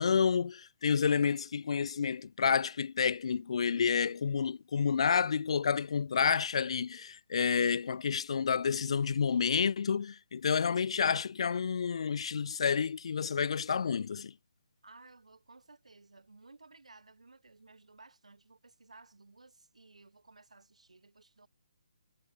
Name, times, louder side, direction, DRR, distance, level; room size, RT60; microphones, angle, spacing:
voice 1, 0.0-14.3, left 6 dB, 60° left, 0.3 m, -29 dB
voice 2, 14.8-21.5, right 3 dB, 85° right, 4.9 m, -57 dB
figure-of-eight pair, 145°, 3 cm